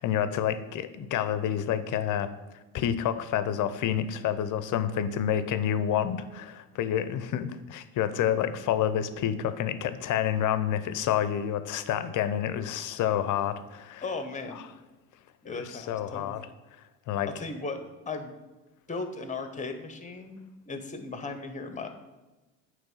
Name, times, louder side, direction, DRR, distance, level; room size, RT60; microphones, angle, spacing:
voice 1, 0.0-2.3 2.7-14.0 14.5-14.6 15.5-16.4 17.1-17.3, left 10 dB, 50° left, 12 dB, 0.7 m, -28 dB
voice 2, 14.0-14.6 15.4-16.3 17.4-17.8 18.1-18.3 18.9-21.9, left 3 dB, 20° left, 8 dB, 1.1 m, -36 dB
8.8 x 3.2 x 5.6 m, 1.1 s
hypercardioid pair, 70°, 39 cm